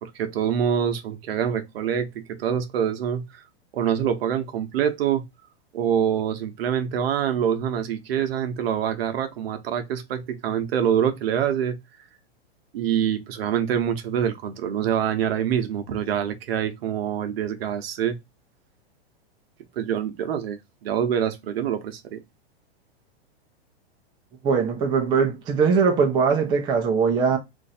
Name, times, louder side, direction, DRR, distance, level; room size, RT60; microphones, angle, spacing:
voice 1, 0.0-3.4 3.7-5.2 5.7-11.8 12.7-18.2 19.8-22.2, right 9 dB, 65° right, 0.9 m, -25 dB
voice 2, 24.4-27.4, right 5 dB, 15° right, 0.5 m, -21 dB
3.0 x 2.6 x 4.0 m
hypercardioid pair, 140°, 32 cm